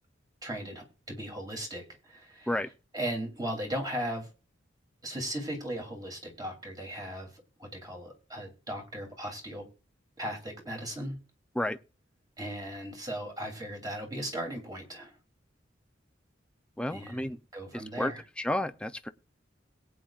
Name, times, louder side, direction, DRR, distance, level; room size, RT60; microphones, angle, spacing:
voice 1, 0.4-2.5 2.9-4.3 5.0-7.3 7.6-9.7 10.2-11.2 12.4-15.1 16.9-18.2, right 1 dB, 20° right, 2.9 m, -37 dB
voice 2, 16.8-17.4 17.7-18.1 18.4-19.1, left 1 dB, 5° left, 0.5 m, -31 dB
21.5 x 8.8 x 2.4 m
head